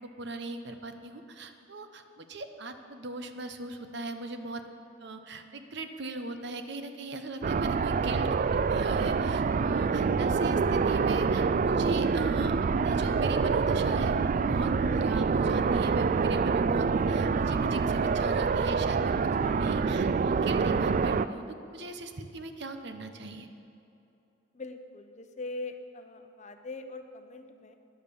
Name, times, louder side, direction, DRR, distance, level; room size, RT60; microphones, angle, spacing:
voice 1, 0.0-4.6 5.0-19.3 19.6-21.4 21.7-23.5, right 2 dB, 60° right, 8 dB, 0.9 m, -39 dB
sound 1, 7.4-21.3, right 5 dB, 40° right, 0.3 m, -26 dB
voice 2, 19.4-19.7 24.5-27.8, left 2 dB, 35° left, 7 dB, 0.8 m, -42 dB
12.5 x 10.5 x 7.0 m, 2.8 s
head